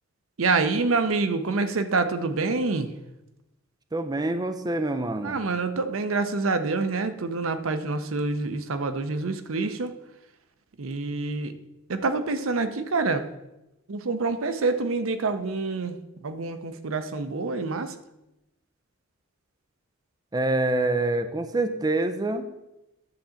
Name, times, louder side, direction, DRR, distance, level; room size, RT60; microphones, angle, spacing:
voice 1, 0.4-2.9 5.2-9.9 10.8-11.6 11.9-13.3 13.9-17.9, right 3 dB, 80° right, 10 dB, 0.7 m, -27 dB
voice 2, 3.9-5.4 20.3-22.5, right 2 dB, 20° right, 8 dB, 0.5 m, -26 dB
10.5 x 3.8 x 7.1 m, 0.94 s
head